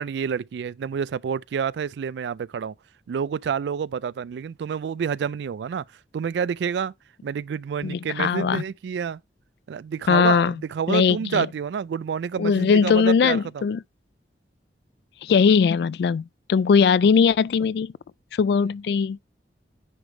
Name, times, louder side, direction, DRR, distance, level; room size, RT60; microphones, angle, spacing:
voice 1, 0.0-2.7 3.1-5.8 6.1-6.9 7.2-9.2 9.7-13.6, right 7 dB, 75° right, 0.3 m, -28 dB
voice 2, 7.8-8.6 10.1-10.5 10.9-11.5 12.4-13.8 15.2-17.9 18.3-19.2, left 6 dB, 65° left, 0.3 m, -20 dB
10.0 x 3.4 x 3.2 m
head